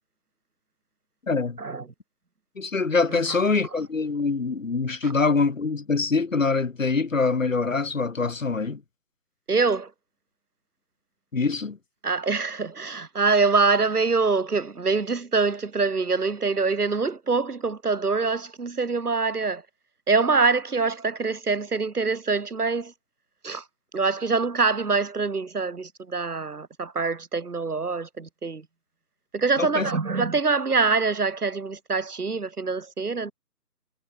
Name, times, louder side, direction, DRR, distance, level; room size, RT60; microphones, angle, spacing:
voice 1, 1.3-1.6 2.6-8.8 11.3-11.8 29.6-29.9, left 4 dB, 50° left, 0.9 m, -24 dB
voice 2, 9.5-9.9 12.0-19.6 20.1-22.9 23.4-23.6 23.9-28.6 29.3-33.3, right 4 dB, 65° right, 1.3 m, -24 dB
figure-of-eight pair, 160°, 49 cm